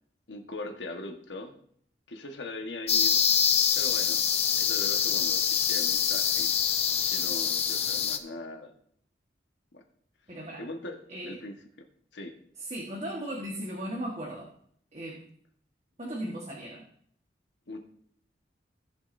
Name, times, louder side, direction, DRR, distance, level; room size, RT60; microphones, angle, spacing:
voice 1, 0.3-1.5 2.1-3.2 3.7-4.2 4.6-6.5 7.0-8.7 9.7-9.8 10.6-11.6 12.1-12.3 17.7-17.8, left 2 dB, 85° left, 4 dB, 1.4 m, -40 dB
sound 1, 2.9-8.2, left 7 dB, 35° left, 0.6 m, -25 dB
voice 2, 10.3-10.6 11.1-11.4 12.7-14.5 14.9-15.2 16.0-16.8, right 1 dB, 35° right, -2 dB, 1.4 m, -36 dB
17.5 x 7.3 x 2.7 m, 0.63 s
head